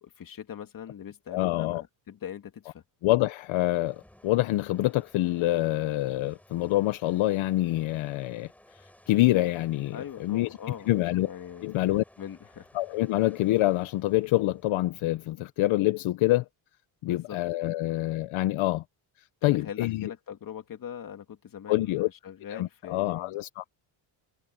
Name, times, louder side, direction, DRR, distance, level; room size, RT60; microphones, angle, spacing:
voice 1, 0.0-2.8 9.9-10.9 11.2-11.7 12.2-12.7 17.1-17.4 19.4-23.4, left 9 dB, 40° left, 2.5 m, -41 dB
voice 2, 1.3-1.8 3.0-8.5 9.1-10.6 10.9-11.3 11.6-12.0 12.7-16.4 17.0-18.8 19.4-20.1 21.7-22.1 22.5-23.7, left 17 dB, 70° left, 0.8 m, -26 dB
sound 1, 3.8-15.2, left 1 dB, 5° left, 4.5 m, -57 dB
cardioid pair, 170°, 49 cm